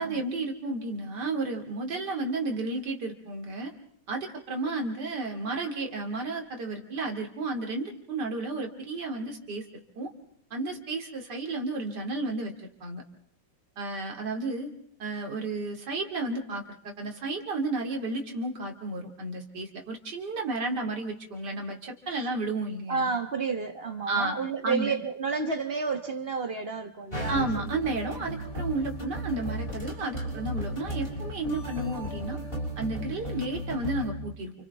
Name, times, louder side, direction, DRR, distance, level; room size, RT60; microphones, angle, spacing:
voice 1, 0.0-3.7 4.1-10.1 10.5-12.5 12.8-13.0 13.8-14.7 15.0-23.1 24.1-24.3 24.6-24.9 27.3-32.4 32.8-34.5, right 2 dB, 60° right, 2 dB, 3.1 m, -32 dB
voice 2, 22.9-27.5 28.3-28.4, right 4 dB, 35° right, 6 dB, 1.3 m, -30 dB
sound 1, 27.1-34.1, equal, 30° left, 6.6 m, -35 dB
29.5 x 28.5 x 3.5 m, 0.70 s
omnidirectional pair, 2.0 m